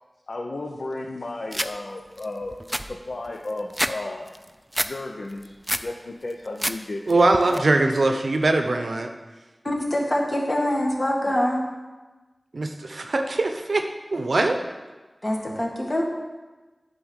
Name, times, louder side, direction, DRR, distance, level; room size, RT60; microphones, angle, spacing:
voice 1, 0.3-4.3 4.8-5.5 5.8-7.7 11.2-11.4, left 2 dB, 75° left, 1 dB, 0.6 m, -34 dB
sound 1, 1.5-1.7 2.2-2.3 2.5-4.0 4.3-4.9 5.3-5.9 6.3-6.8 7.1-7.6, equal, 5° right, 0.4 m, -28 dB
voice 2, 7.1-9.1 12.5-14.6, right 2 dB, 80° right, 5 dB, 0.6 m, -22 dB
voice 3, 9.6-11.6 15.2-16.0, left 1 dB, 40° left, -2 dB, 1.7 m, -24 dB
9.4 x 3.8 x 6.4 m, 1.2 s
wide cardioid pair, 50°, 0 cm